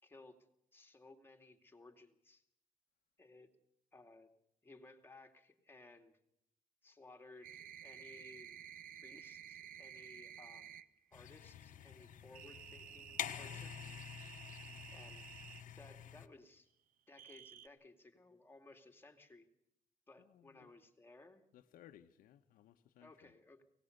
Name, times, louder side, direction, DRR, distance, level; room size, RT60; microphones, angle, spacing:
voice 1, 0.0-0.4 0.7-2.4 3.2-3.5 3.9-4.3 4.6-6.2 6.8-8.6 9.0-10.8 11.1-13.8 14.9-15.3 15.7-16.7 17.1-19.5 20.1-21.4 23.0-23.6, left 2 dB, 15° left, 2.6 m, -59 dB
sound 1, 7.4-10.9 12.3-15.6 17.2-17.7, right 9 dB, 90° right, 0.8 m, -53 dB
sound 2, 11.1-16.3, left 10 dB, 70° left, 1.2 m, -48 dB
voice 2, 20.2-20.7 21.5-23.3, left 11 dB, 90° left, 1.1 m, -62 dB
23.5 x 18.5 x 6.7 m
cardioid pair, 110°, 14 cm